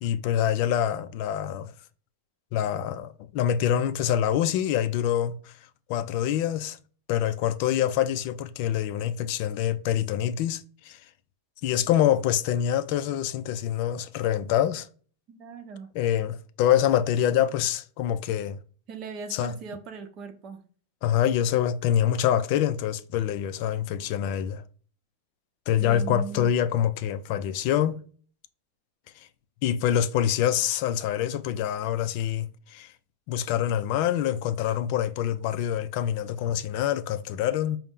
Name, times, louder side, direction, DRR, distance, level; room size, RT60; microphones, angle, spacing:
voice 1, 0.0-1.7 2.5-5.5 5.9-6.8 7.1-11.0 11.6-14.9 15.9-18.6 19.3-19.5 21.0-24.6 25.7-28.0 29.6-32.9 33.3-37.8, left 10 dB, 55° left, 0.3 m, -25 dB
voice 2, 15.3-15.9 18.9-20.6 25.8-26.5, right 6 dB, 40° right, 0.7 m, -39 dB
4.2 x 2.0 x 3.6 m
supercardioid pair, 135°, 0 cm